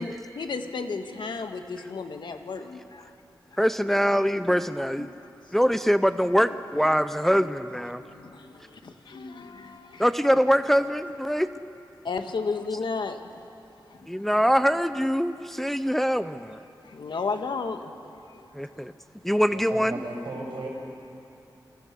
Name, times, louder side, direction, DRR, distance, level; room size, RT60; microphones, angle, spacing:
voice 1, 0.0-3.1 3.5-4.1 5.0-5.1 5.4-5.5 6.9-7.0 8.0-10.1 12.0-13.4 13.9-14.2 16.8-18.9, left 4 dB, 75° left, 6 dB, 1.7 m, -34 dB
voice 2, 3.6-5.1 5.5-8.0 10.0-11.5 14.1-16.6 18.5-18.9 19.2-19.9, equal, 5° left, 11 dB, 0.6 m, -23 dB
voice 3, 19.5-20.7, right 2 dB, 85° right, 0 dB, 6.5 m, -36 dB
29.0 x 24.5 x 6.8 m, 2.8 s
wide cardioid pair, 145°, 8 cm